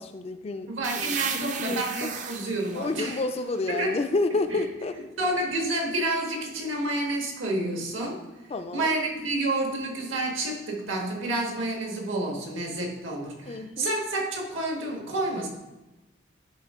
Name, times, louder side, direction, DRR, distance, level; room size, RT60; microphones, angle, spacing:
voice 1, 0.0-2.1 2.7-4.9 8.5-8.9 13.4-13.9, left 3 dB, 30° left, 9 dB, 0.3 m, -30 dB
voice 2, 0.7-3.2 3.7-4.0 4.5-4.6 4.9-8.2 8.7-15.5, right 2 dB, 80° right, 1 dB, 1.5 m, -29 dB
sound 1, 0.8-4.4, right 7 dB, 40° right, 0.4 m, -36 dB
10.5 x 3.7 x 3.6 m, 1.0 s
head